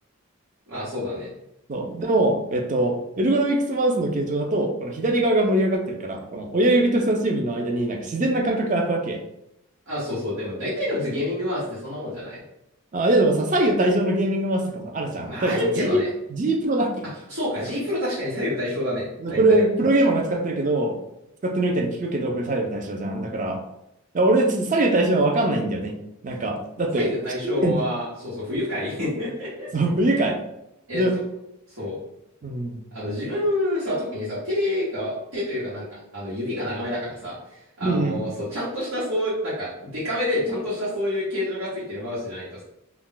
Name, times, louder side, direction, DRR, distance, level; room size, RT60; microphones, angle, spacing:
voice 1, 0.7-1.3 9.9-12.4 15.3-16.1 17.3-19.6 27.0-29.7 30.9-31.0 31.8-32.0 32.9-37.4 37.8-42.6, left 1 dB, 75° right, -10 dB, 1.1 m, -28 dB
voice 2, 1.7-9.2 12.9-16.0 16.3-17.1 19.2-21.0 21.4-23.6 24.1-26.0 26.2-27.1 27.4-27.7 29.7-30.4 30.9-31.2 32.4-32.8 37.8-38.3, right 1 dB, 35° right, 3 dB, 0.4 m, -22 dB
2.3 x 2.2 x 3.8 m, 0.85 s
head